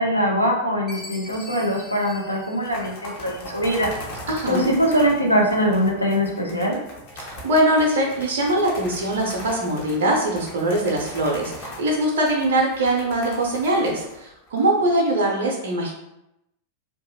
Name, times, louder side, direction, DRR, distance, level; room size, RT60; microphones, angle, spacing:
voice 1, 0.0-3.9 4.5-6.8, equal, 90° left, -2 dB, 0.5 m, -22 dB
Chime, 0.9-3.4, left 2 dB, 20° left, 0.8 m, -42 dB
sound 1, 1.3-2.0 2.5-15.0, left 1 dB, 50° left, 0.8 m, -40 dB
voice 2, 4.3-4.7 7.2-15.9, right 1 dB, 60° right, -1 dB, 0.4 m, -22 dB
2.6 x 2.2 x 2.6 m, 0.86 s
figure-of-eight pair, 90°, 0 cm